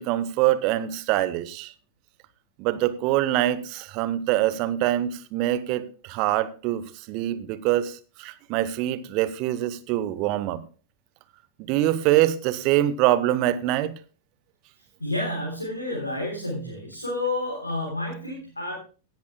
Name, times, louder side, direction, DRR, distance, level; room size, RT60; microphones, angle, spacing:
voice 1, 0.0-1.7 2.6-10.6 11.6-13.9, right 14 dB, 45° right, 0.9 m, -24 dB
voice 2, 15.0-18.8, left 1 dB, 80° left, 3.6 m, -30 dB
17.0 x 10.5 x 2.3 m
figure-of-eight pair, 90°, 0 cm